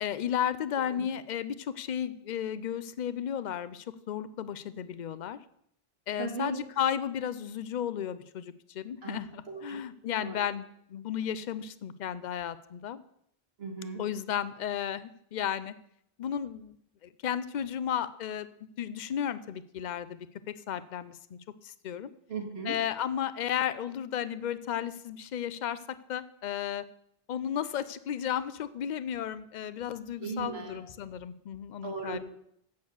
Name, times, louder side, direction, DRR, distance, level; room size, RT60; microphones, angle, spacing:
voice 1, 0.0-5.4 6.1-13.0 14.0-15.7 16.2-16.7 17.0-18.5 18.8-21.4 21.6-22.1 22.7-26.8 27.3-32.2, left 9 dB, 55° left, 15 dB, 0.6 m, -34 dB
voice 2, 6.2-6.6 9.0-9.2 9.5-9.8 10.2-10.4 13.6-14.0 22.3-22.8 30.2-30.8 31.8-32.2, right 4 dB, 80° right, 2 dB, 1.9 m, -37 dB
8.3 x 6.5 x 7.0 m, 0.73 s
omnidirectional pair, 1.0 m